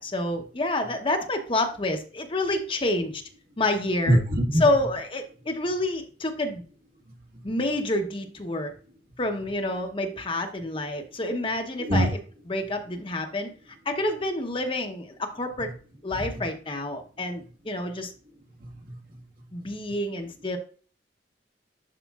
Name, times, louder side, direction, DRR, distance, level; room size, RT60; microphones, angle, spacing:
voice 1, 0.0-3.2 3.6-4.2 4.6-6.6 7.4-8.7 9.2-12.1 12.5-13.5 13.9-15.7 16.0-18.1 19.5-20.6, left 1 dB, 30° left, 5 dB, 0.9 m, -28 dB
voice 2, 4.1-4.6 7.3-7.4 11.8-12.1 16.1-16.5 18.6-19.2, equal, 50° right, 1 dB, 1.5 m, -24 dB
11.0 x 4.9 x 2.4 m, 0.39 s
head